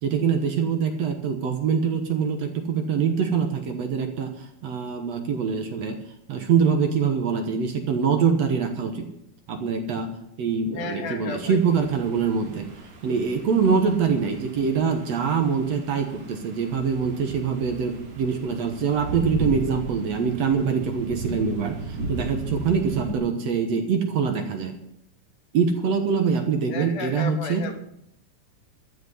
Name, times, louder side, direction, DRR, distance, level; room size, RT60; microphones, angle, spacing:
voice 1, 0.0-4.3 4.6-6.0 6.3-9.1 9.5-10.1 10.4-12.7 13.0-24.7 25.5-27.6, right 6 dB, 65° right, 5 dB, 2.4 m, -24 dB
voice 2, 10.7-11.6 26.7-27.8, left 6 dB, 70° left, 6 dB, 2.5 m, -33 dB
sound 1, 11.4-23.1, right 2 dB, 40° right, 2.0 m, -36 dB
13.5 x 6.2 x 10.0 m, 0.76 s
omnidirectional pair, 3.3 m